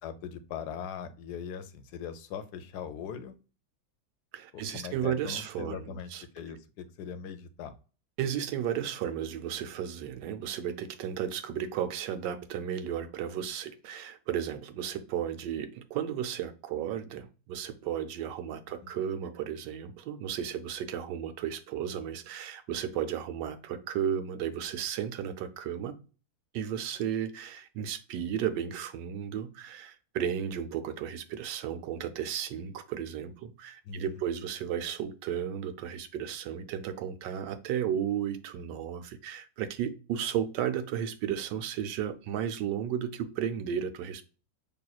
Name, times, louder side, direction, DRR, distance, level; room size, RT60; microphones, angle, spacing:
voice 1, 0.0-3.3 4.5-7.7 18.8-18.9 33.9-34.2, left 7 dB, 75° left, 1.1 m, -40 dB
voice 2, 4.3-6.2 8.2-26.0 26.5-44.2, right 9 dB, 85° right, 1.3 m, -34 dB
6.0 x 3.0 x 2.3 m
omnidirectional pair, 1.8 m